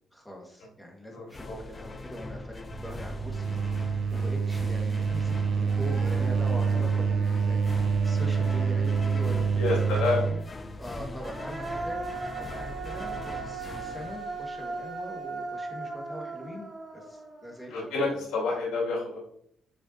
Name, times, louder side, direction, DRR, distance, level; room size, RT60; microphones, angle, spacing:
voice 1, 0.1-10.5 10.8-12.0 12.4-18.0, equal, 5° left, 0 dB, 1.8 m, -42 dB
voice 2, 1.1-1.6 9.6-10.2 17.7-19.2, left 3 dB, 80° left, -3 dB, 2.4 m, -28 dB
sound 1, 1.3-15.0, left 2 dB, 30° left, 0.5 m, -41 dB
sound 2, 2.7-10.4, right 5 dB, 60° right, 0.5 m, -27 dB
Human voice, 5.2-5.3 5.6-9.3 11.0-18.2, right 3 dB, 30° right, 1.8 m, -39 dB
6.4 x 5.2 x 2.8 m, 0.68 s
cardioid pair, 80°, 0 cm